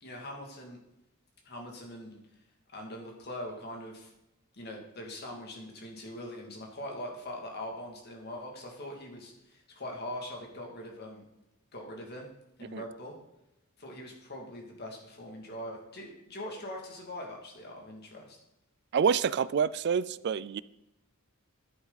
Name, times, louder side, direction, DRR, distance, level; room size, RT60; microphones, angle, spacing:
voice 1, 0.0-0.8 1.4-2.2 2.7-4.1 4.5-11.2 11.7-12.3 12.6-13.1 13.8-18.4, left 1 dB, 50° left, 1 dB, 2.4 m, -42 dB
voice 2, 18.9-20.6, right 7 dB, 50° right, 19 dB, 0.3 m, -27 dB
10.5 x 9.5 x 4.0 m, 0.89 s
head